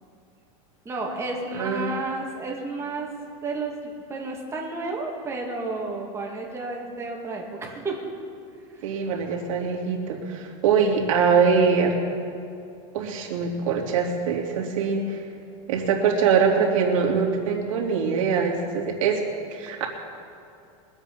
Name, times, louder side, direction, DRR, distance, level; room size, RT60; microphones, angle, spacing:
voice 1, 0.8-3.1 3.4-8.0, right 3 dB, 15° right, -1 dB, 2.3 m, -31 dB
voice 2, 1.5-1.9 8.8-12.0 12.9-15.2 15.7-19.2 19.5-19.9, right 6 dB, 75° right, 0 dB, 2.8 m, -23 dB
22.5 x 8.1 x 5.5 m, 2.6 s
supercardioid pair, 150°, 17 cm